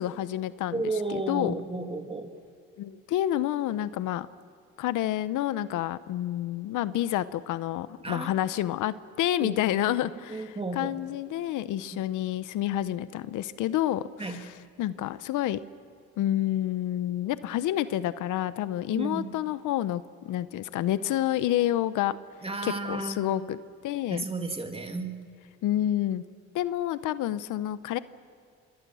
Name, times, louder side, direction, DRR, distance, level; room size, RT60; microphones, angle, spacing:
voice 1, 0.0-0.8 1.1-1.5 2.8-4.3 4.8-14.5 14.8-15.6 16.2-22.2 22.6-23.6 23.8-24.2 25.6-26.2 26.5-28.0, left 13 dB, 85° left, 15 dB, 0.8 m, -29 dB
voice 2, 0.7-2.3 8.0-8.3 9.4-9.9 10.3-11.0 11.9-12.0 14.2-14.4 18.9-19.3 22.4-23.4 24.1-25.2, right 3 dB, 20° right, 4 dB, 2.7 m, -33 dB
27.0 x 23.5 x 6.3 m, 2.3 s
cardioid pair, 90°, 30 cm